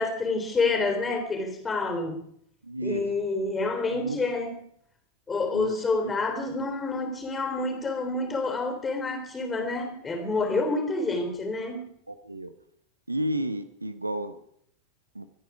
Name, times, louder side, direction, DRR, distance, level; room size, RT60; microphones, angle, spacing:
voice 1, 0.0-2.2 2.8-4.6 5.3-11.8, left 3 dB, 15° left, 5 dB, 3.6 m, -28 dB
voice 2, 2.6-3.0 3.9-4.2 5.5-5.7 6.0-6.1 12.1-12.5 13.1-14.4 15.1-15.3, right 1 dB, 85° right, 12 dB, 1.0 m, -31 dB
25.0 x 8.9 x 4.8 m, 0.68 s
figure-of-eight pair, 90°, 0 cm